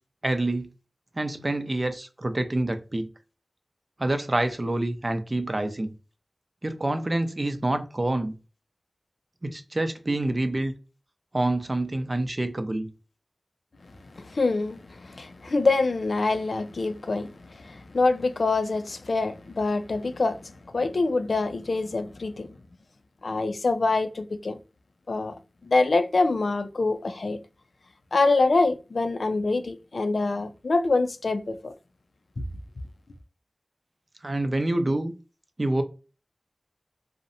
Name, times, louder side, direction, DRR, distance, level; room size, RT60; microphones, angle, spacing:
voice 1, 0.2-0.7 1.2-3.1 4.0-5.9 6.6-8.3 9.4-10.7 11.3-12.9 34.2-35.1 35.6-35.8, right 2 dB, 45° right, 0.4 m, -27 dB
voice 2, 14.1-22.6 23.2-24.6 25.1-25.4 25.6-27.4 28.1-31.7 32.4-32.5, left 3 dB, 85° left, 0.3 m, -25 dB
2.6 x 2.0 x 2.6 m
wide cardioid pair, 50°, 0 cm